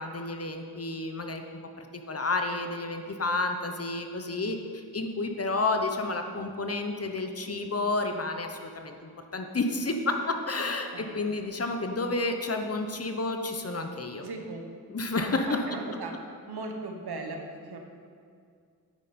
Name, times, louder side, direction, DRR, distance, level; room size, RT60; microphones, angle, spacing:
voice 1, 0.0-1.4 1.8-14.2 14.9-15.7, left 2 dB, 40° left, 5 dB, 0.9 m, -30 dB
voice 2, 10.9-11.2 14.2-14.6 15.5-16.1 16.5-17.8, right 3 dB, 75° right, 3 dB, 1.3 m, -38 dB
10.0 x 8.9 x 4.3 m, 2.2 s
wide cardioid pair, 85°, 39 cm